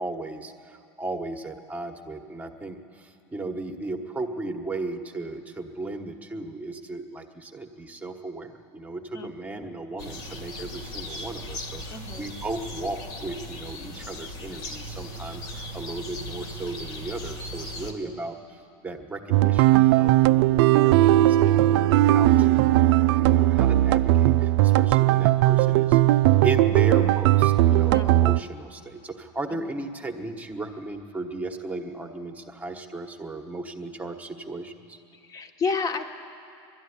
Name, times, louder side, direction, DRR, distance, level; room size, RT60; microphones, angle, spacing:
voice 1, 0.0-35.0, right 2 dB, 10° right, 4 dB, 1.2 m, -35 dB
voice 2, 9.1-9.7 11.9-12.3 17.8-18.2 27.9-28.2 29.6-29.7 35.2-36.1, left 4 dB, 25° left, 6 dB, 1.2 m, -32 dB
sound 1, 10.0-17.9, left 1 dB, 70° left, 2.5 m, -38 dB
sound 2, 19.3-28.4, right 15 dB, 75° right, 0.4 m, -18 dB
20.5 x 13.0 x 9.9 m, 2.8 s
supercardioid pair, 140°, 14 cm